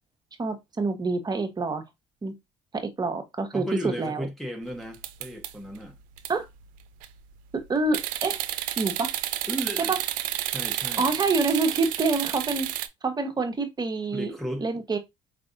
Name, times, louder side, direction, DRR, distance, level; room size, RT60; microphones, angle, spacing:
voice 1, 0.4-1.8 2.2-2.3 2.7-3.7 4.0-4.3 6.3-6.5 7.5-8.4 8.8-9.1 9.9-10.0 11.0-12.7 13.0-14.3 14.6-15.0, right 3 dB, 30° right, 1.2 m, -27 dB
voice 2, 3.5-6.0 9.5-10.0 10.5-11.1 14.1-14.7, equal, ahead, 1.0 m, -34 dB
sound 1, 4.9-5.8 6.2-6.3 6.8-7.2 7.9-12.9, right 14 dB, 80° right, 0.5 m, -30 dB
5.0 x 3.3 x 2.6 m
supercardioid pair, 80°, 14 cm